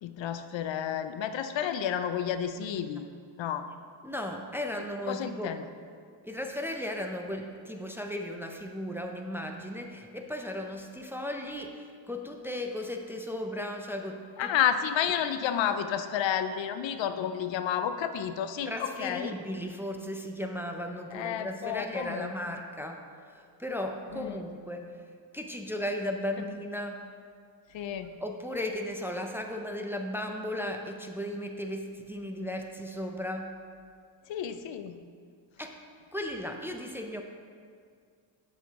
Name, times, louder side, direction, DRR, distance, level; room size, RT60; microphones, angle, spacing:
voice 1, 0.0-3.1 3.4-3.7 5.1-5.6 14.4-19.4 21.1-22.5 24.1-24.4 27.7-28.2 34.3-35.1, left 9 dB, 75° left, 10 dB, 0.5 m, -31 dB
voice 2, 4.0-5.6 6.2-14.5 18.7-23.1 23.3-24.9 25.3-27.1 28.2-33.6 35.6-35.8 36.1-37.2, left 1 dB, 5° right, 3 dB, 0.5 m, -36 dB
7.5 x 5.7 x 3.6 m, 2.2 s
cardioid pair, 80°, 45 cm